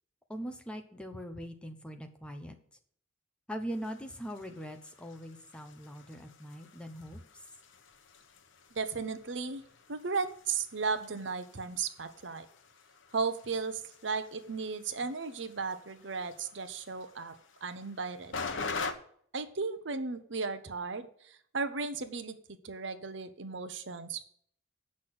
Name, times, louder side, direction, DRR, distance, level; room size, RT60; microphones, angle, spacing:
voice 1, 0.3-2.5 3.5-7.4, equal, 5° left, 5 dB, 1.0 m, -41 dB
sound 1, 3.7-18.9, left 4 dB, 70° left, 1.0 m, -45 dB
voice 2, 8.7-9.6 9.9-12.5 13.1-17.3 17.6-18.3 19.3-24.2, right 4 dB, 65° right, 11 dB, 0.9 m, -35 dB
8.3 x 6.4 x 7.7 m, 0.63 s
head